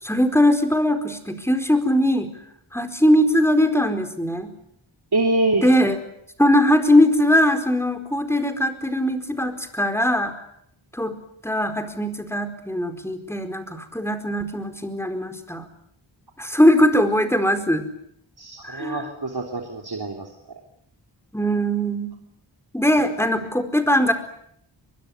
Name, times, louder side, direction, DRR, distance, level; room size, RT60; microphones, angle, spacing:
voice 1, 0.0-2.3 2.7-4.5 5.6-6.0 6.4-10.3 10.9-11.2 11.4-15.6 16.4-17.8 18.6-19.1 21.3-22.1 22.7-24.1, equal, 5° left, 8 dB, 4.6 m, -20 dB
voice 2, 5.1-5.7 18.4-20.6, right 2 dB, 55° right, 2 dB, 3.4 m, -25 dB
23.0 x 23.0 x 9.7 m, 0.71 s
wide cardioid pair, 55°, 47 cm